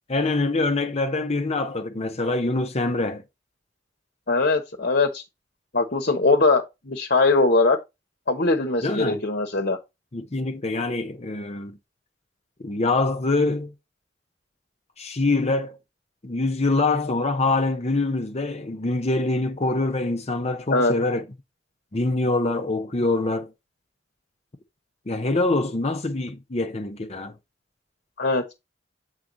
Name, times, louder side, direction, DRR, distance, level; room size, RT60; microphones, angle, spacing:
voice 1, 0.1-3.2 8.8-9.2 10.1-11.8 12.6-13.7 15.0-15.8 16.2-21.2 21.9-23.5 25.1-27.3, left 2 dB, 35° left, 0.8 m, -24 dB
voice 2, 4.3-5.2 5.7-7.8 8.3-9.8 20.7-20.9 28.2-28.4, left 3 dB, 55° left, 1.1 m, -21 dB
7.7 x 4.8 x 4.0 m
head